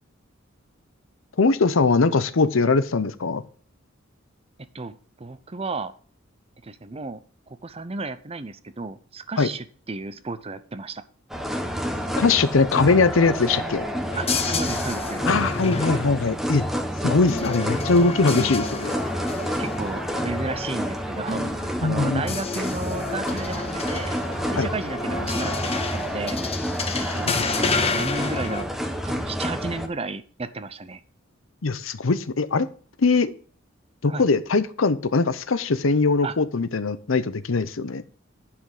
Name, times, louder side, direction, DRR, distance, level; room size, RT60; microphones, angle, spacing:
voice 1, 1.4-3.4 9.4-9.5 12.2-13.9 15.2-16.6 17.0-18.9 21.8-22.2 24.6-24.7 27.1-27.4 31.6-32.7 33.0-33.3 34.0-38.0, left 4 dB, 75° left, 14 dB, 0.7 m, -21 dB
voice 2, 4.7-5.9 6.6-7.2 7.5-11.0 14.2-15.2 19.6-24.2 24.5-26.4 26.9-28.7 29.0-31.0 34.1-34.3 36.2-36.3, right 3 dB, 30° right, 13 dB, 0.7 m, -33 dB
sound 1, 11.3-29.9, equal, ahead, 1.0 m, -29 dB
sound 2, 14.1-22.0 22.3-28.6, left 3 dB, 30° left, 1.0 m, -30 dB
9.7 x 5.9 x 4.9 m, 0.44 s
head